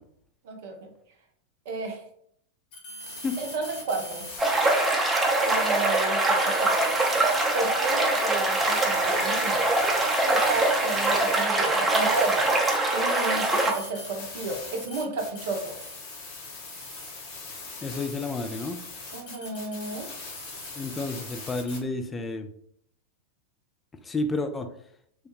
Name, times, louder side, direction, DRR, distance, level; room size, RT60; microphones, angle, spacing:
voice 1, 0.4-0.9 1.7-2.0 3.4-4.3 5.4-6.8 7.5-9.6 10.3-12.5 12.9-15.7 19.1-20.1, right 3 dB, 50° right, 3 dB, 0.7 m, -32 dB
sound 1, 2.7-4.9 5.2-21.8, left 3 dB, 45° left, 0.8 m, -40 dB
sound 2, 4.4-13.7, right 2 dB, 10° right, 0.7 m, -23 dB
voice 2, 17.8-18.8 20.8-22.5 24.0-24.7, left 2 dB, 15° left, 6 dB, 0.3 m, -30 dB
3.4 x 2.2 x 2.9 m, 0.68 s
figure-of-eight pair, 90°, 0 cm